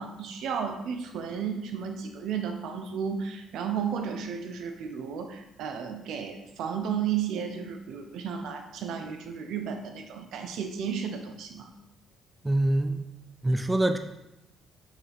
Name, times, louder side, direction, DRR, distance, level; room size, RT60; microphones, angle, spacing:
voice 1, 0.0-11.7, right 7 dB, 75° right, 6 dB, 0.9 m, -33 dB
voice 2, 12.4-13.0 13.4-14.0, right 1 dB, 10° right, 7 dB, 0.4 m, -24 dB
6.5 x 6.1 x 3.6 m, 0.89 s
cardioid pair, 130°, 0 cm